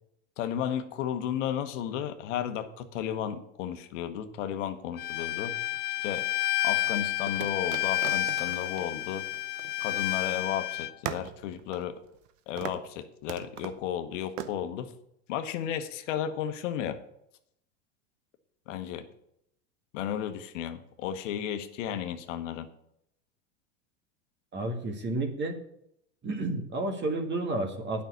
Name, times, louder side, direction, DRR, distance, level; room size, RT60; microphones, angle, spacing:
voice 1, 0.4-5.6 6.0-6.3 6.6-9.3 9.8-12.0 12.5-14.9 15.3-17.0 18.7-19.0 19.9-22.7, left 10 dB, 75° left, 9 dB, 1.2 m, -33 dB
Bowed string instrument, 5.0-10.9, left 15 dB, 30° left, 0.4 m, -30 dB
sound 1, 5.2-6.1 7.3-10.2 10.5-10.6 11.0-12.3 12.6-12.9 13.3-13.8 14.4-14.5, right 10 dB, 90° right, 0.9 m, -40 dB
voice 2, 24.5-25.5 26.2-28.0, right 2 dB, 30° right, 5 dB, 1.9 m, -31 dB
9.1 x 5.7 x 7.9 m, 0.75 s
supercardioid pair, 115°, 37 cm